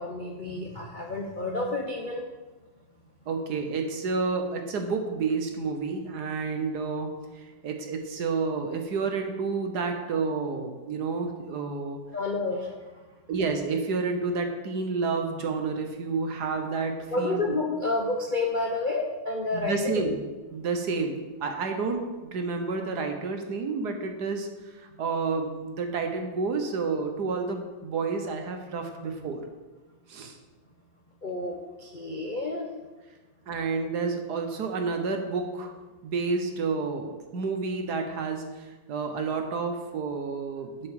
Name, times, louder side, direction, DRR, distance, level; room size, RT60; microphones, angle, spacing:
voice 1, 0.0-2.3 12.1-12.9 17.1-20.0 31.2-32.7, left 2 dB, 45° left, 0 dB, 0.6 m, -30 dB
voice 2, 3.3-7.1 7.6-12.0 13.3-17.4 19.5-20.2 20.5-22.0 22.3-29.4 30.1-30.3 33.5-35.7 36.0-40.9, right 4 dB, 60° right, 5 dB, 1.5 m, -30 dB
7.6 x 5.8 x 7.0 m, 1.2 s
omnidirectional pair, 2.1 m